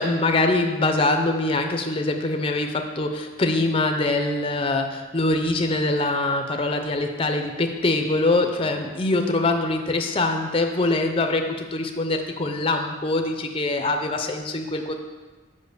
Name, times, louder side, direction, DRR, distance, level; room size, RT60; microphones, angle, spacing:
voice 1, 0.0-14.9, left 2 dB, 25° left, 5 dB, 0.5 m, -23 dB
6.5 x 5.1 x 6.8 m, 1.3 s
head